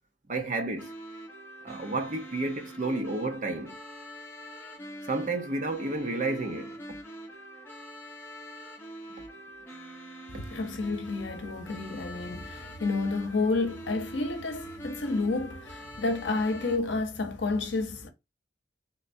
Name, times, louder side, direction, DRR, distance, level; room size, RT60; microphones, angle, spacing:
voice 1, 0.3-0.9 1.6-3.8 5.1-7.0, right 2 dB, 40° right, 0.7 m, -31 dB
sound 1, 0.8-16.8, equal, 10° left, 0.9 m, -44 dB
voice 2, 10.5-18.1, left 3 dB, 65° left, 0.8 m, -30 dB
3.7 x 3.2 x 2.6 m
head